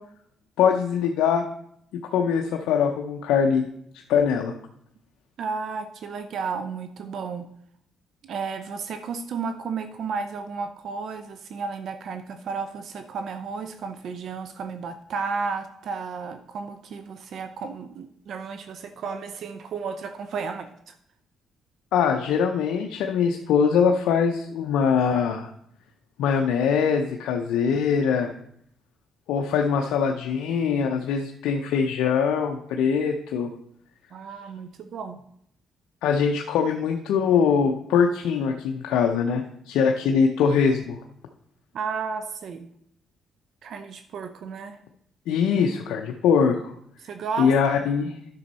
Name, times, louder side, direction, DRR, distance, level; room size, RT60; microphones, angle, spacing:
voice 1, 0.6-1.4 2.1-3.6 4.1-4.5 21.9-25.5 26.2-28.3 29.3-33.5 36.0-41.0 45.3-46.7 47.4-48.1, left 6 dB, 90° left, 3 dB, 0.6 m, -22 dB
voice 2, 5.4-7.5 8.2-21.0 34.1-35.2 41.7-42.7 43.6-44.8 47.0-47.5 47.8-47.9, right 5 dB, 65° right, 9 dB, 0.6 m, -33 dB
10.5 x 6.3 x 4.1 m, 0.71 s
cardioid pair, 90°, 0 cm